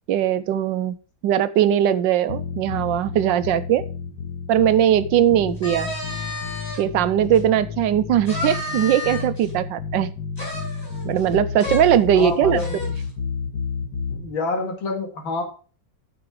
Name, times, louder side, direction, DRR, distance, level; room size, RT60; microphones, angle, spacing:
voice 1, 0.1-0.9 1.2-3.8 4.5-5.9 6.8-10.1 11.0-12.6, right 10 dB, 75° right, 15 dB, 1.3 m, -19 dB
sound 1, 2.3-14.2, left 5 dB, 60° left, 2.9 m, -31 dB
sound 2, 5.6-6.8 7.3-7.4 8.3-9.5 10.4-11.3 11.6-11.8 12.2-12.3 12.6-13.0, left 2 dB, 30° left, 5.0 m, -32 dB
voice 2, 12.1-13.0 14.2-15.4, left 3 dB, 90° left, 2 dB, 3.0 m, -27 dB
9.5 x 6.9 x 4.7 m, 0.36 s
omnidirectional pair, 2.1 m